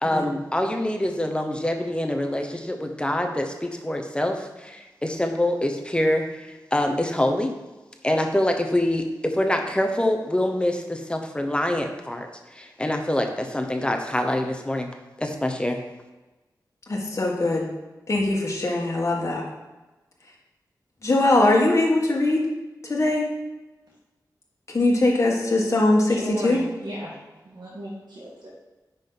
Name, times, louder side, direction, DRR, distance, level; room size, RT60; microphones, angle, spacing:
voice 1, 0.0-7.5 8.0-14.9 15.2-15.8, left 1 dB, 15° left, 4 dB, 0.9 m, -25 dB
voice 2, 16.9-17.7 18.1-19.4 21.0-22.4 22.8-23.2 24.7-26.2 26.4-26.6, left 2 dB, 40° left, -3 dB, 1.5 m, -21 dB
voice 3, 26.1-28.5, right 1 dB, 80° right, -5 dB, 1.8 m, -35 dB
9.9 x 5.4 x 4.0 m, 1.1 s
wide cardioid pair, 105°, 7 cm